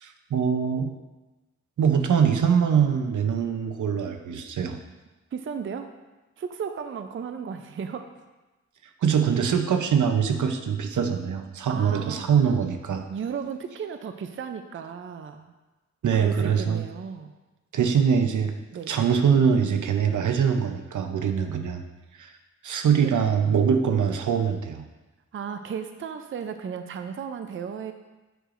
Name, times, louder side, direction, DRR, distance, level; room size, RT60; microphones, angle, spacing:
voice 1, 0.0-0.9 1.8-4.8 9.0-13.0 16.0-16.8 17.7-18.5 18.9-21.8 22.2-22.3 22.6-24.8, right 7 dB, 85° right, 6 dB, 0.6 m, -23 dB
voice 2, 5.3-5.9 6.4-8.1 11.7-12.3 13.1-15.5 16.1-17.3 18.7-19.0 23.0-23.1 25.3-27.9, right 7 dB, 45° right, 7 dB, 0.4 m, -34 dB
7.9 x 6.5 x 2.5 m, 1.1 s
wide cardioid pair, 130°, 30 cm